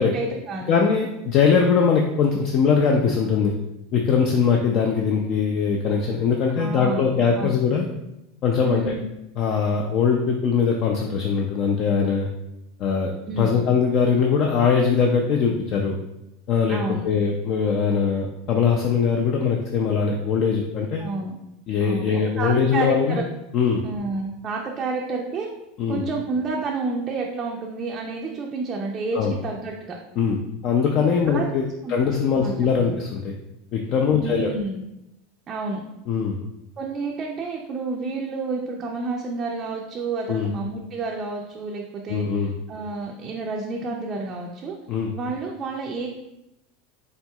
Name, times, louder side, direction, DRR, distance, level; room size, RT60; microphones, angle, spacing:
voice 1, 0.0-0.7 6.5-7.6 8.6-9.0 13.3-13.6 16.7-17.0 21.0-21.3 21.8-23.2 23.8-25.5 25.9-30.0 31.3-31.5 31.8-32.0 32.4-32.5 32.8-33.0 34.1-34.8 35.5-35.8 36.8-42.2 42.7-44.7 45.1-46.1, right 3 dB, 25° right, -1 dB, 0.4 m, -30 dB
voice 2, 0.7-3.5 3.9-7.9 8.4-8.8 9.4-12.3 12.8-13.1 13.4-16.0 16.5-16.8 17.0-21.0 21.7-23.2 23.5-23.8 25.8-26.0 29.1-29.3 30.2-30.4 30.6-33.3 33.7-34.5 36.1-36.4 40.3-40.5 42.1-42.5 44.9-45.1, left 6 dB, 40° left, 1 dB, 0.4 m, -21 dB
4.4 x 3.8 x 2.3 m, 0.89 s
supercardioid pair, 150°, 0 cm